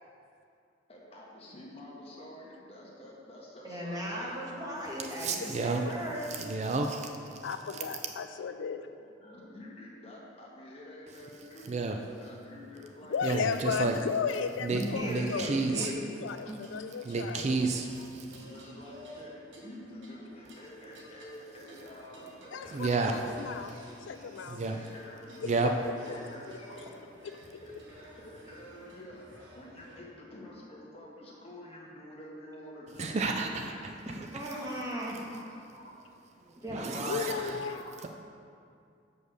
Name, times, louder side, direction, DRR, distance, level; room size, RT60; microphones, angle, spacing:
voice 1, 0.9-4.4 7.6-7.9 8.9-13.4 13.7-14.0 14.9-15.6 18.3-23.3 24.7-26.9 27.6-34.2 35.3-35.5 35.7-35.9 37.3-37.9, left 1 dB, 30° left, -4 dB, 1.4 m, -48 dB
voice 2, 3.6-6.3 14.7-16.0 16.5-16.6 34.3-35.2 35.5-35.6 36.6-37.5, equal, 20° right, -4 dB, 1.3 m, -37 dB
voice 3, 5.2-5.8 6.3-7.5 11.7-12.0 13.2-13.9 14.6-15.9 17.1-18.3 22.7-23.1 24.5-24.8 25.5-25.7 33.0-33.9 36.7-37.3 38.0-38.1, right 3 dB, 35° right, 4 dB, 0.4 m, -31 dB
voice 4, 7.4-8.9 13.1-15.9 16.2-17.6 22.5-24.6 25.4-25.7 26.1-26.2 27.2-27.6 37.0-37.8, left 5 dB, 85° left, 9 dB, 0.4 m, -35 dB
sound 1, 16.4-30.0, right 1 dB, 80° right, 1.5 m, -52 dB
6.4 x 5.4 x 6.4 m, 2.4 s
head